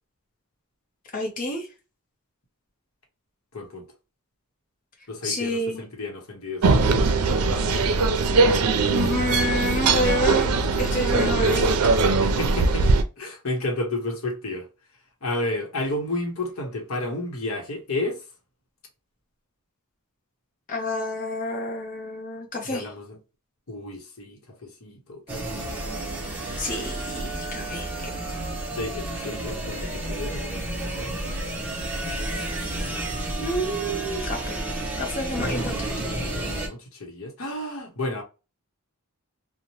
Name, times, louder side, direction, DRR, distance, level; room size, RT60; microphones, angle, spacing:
voice 1, 1.1-1.7 5.2-5.8 8.9-10.5 10.8-12.1 20.7-22.9 26.6-28.4 33.4-34.6 35.0-36.0, left 1 dB, 40° left, 0.7 m, -29 dB
voice 2, 3.5-3.9 5.1-7.2 7.6-8.0 12.2-14.7 15.2-18.2 22.6-23.2 23.7-25.7 28.7-31.1 36.3-38.2, left 2 dB, 65° left, 0.9 m, -32 dB
sound 1, 6.6-13.0, right 3 dB, 90° right, 0.5 m, -21 dB
sound 2, 25.3-36.7, right 1 dB, 10° right, 0.7 m, -31 dB
2.8 x 2.1 x 2.9 m
head